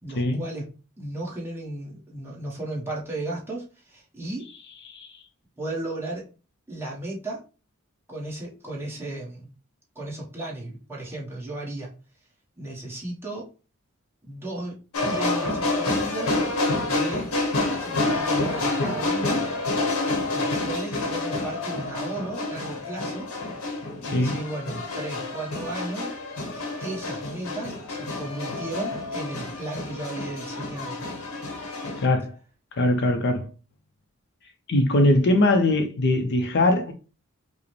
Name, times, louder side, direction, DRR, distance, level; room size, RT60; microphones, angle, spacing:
voice 1, 0.0-4.5 5.6-6.2 6.7-7.4 8.1-9.5 9.9-11.9 12.6-13.5 14.2-14.8 15.1-17.3 17.8-19.4 20.3-23.3 24.0-26.1 26.8-31.0, right 2 dB, 10° right, 1.2 m, -35 dB
sound 1, 14.9-32.1, left 2 dB, 75° left, 0.9 m, -28 dB
voice 2, 32.0-32.3 32.8-33.5 34.7-36.9, left 1 dB, 55° left, 0.6 m, -21 dB
4.8 x 2.1 x 3.1 m
head